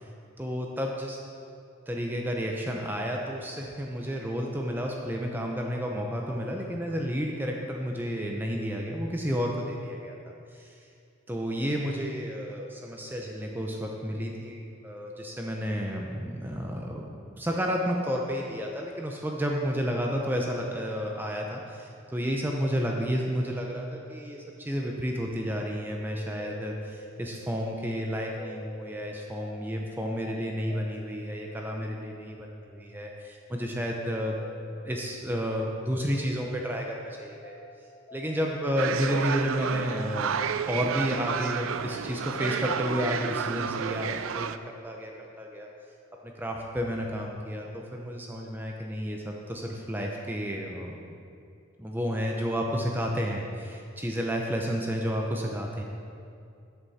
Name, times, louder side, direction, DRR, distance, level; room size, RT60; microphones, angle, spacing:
voice 1, 0.4-1.2 1.9-10.8 11.3-17.1 17.4-34.4 34.7-37.6 38.1-40.3 40.7-45.7 46.2-51.0 51.8-55.8, equal, 10° right, 0 dB, 0.7 m, -31 dB
sound 1, 26.1-41.7 42.1-44.0, left 1 dB, 35° left, 0.6 m, -49 dB
sound 2, 38.8-44.6, right 7 dB, 75° right, 0.4 m, -31 dB
13.5 x 8.1 x 4.2 m, 2.5 s
head